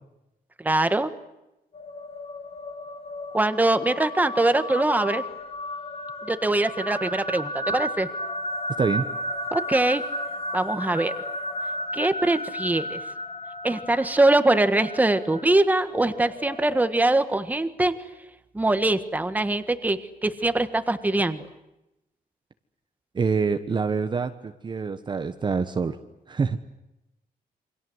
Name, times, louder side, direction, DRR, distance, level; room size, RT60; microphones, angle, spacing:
voice 1, 0.6-1.1 3.3-5.2 6.2-8.1 9.5-10.0 10.5-11.1 11.9-13.0 13.6-17.9 18.5-21.5, right 2 dB, 10° right, 10 dB, 1.5 m, -22 dB
sound 1, 1.7-16.9, left 1 dB, 35° left, 1.4 m, -34 dB
voice 2, 23.1-26.0 26.3-26.6, right 5 dB, 30° right, 8 dB, 1.2 m, -26 dB
28.5 x 25.0 x 8.0 m, 0.92 s
wide cardioid pair, 170°, 16 cm